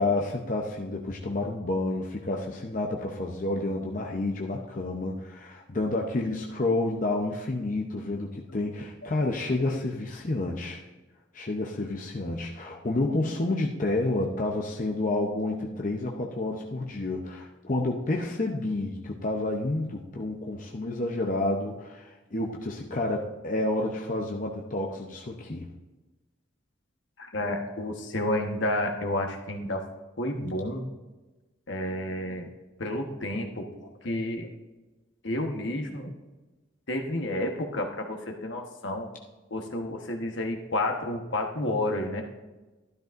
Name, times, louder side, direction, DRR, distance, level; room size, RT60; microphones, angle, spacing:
voice 1, 0.0-10.8 11.3-25.7, left 2 dB, 40° left, 0 dB, 0.7 m, -29 dB
voice 2, 27.2-29.8 30.2-30.8 31.7-32.5 32.8-34.5 35.2-36.1 36.9-39.1 39.5-42.2, left 1 dB, 70° left, 3 dB, 1.2 m, -30 dB
13.0 x 12.0 x 2.5 m, 1.2 s
head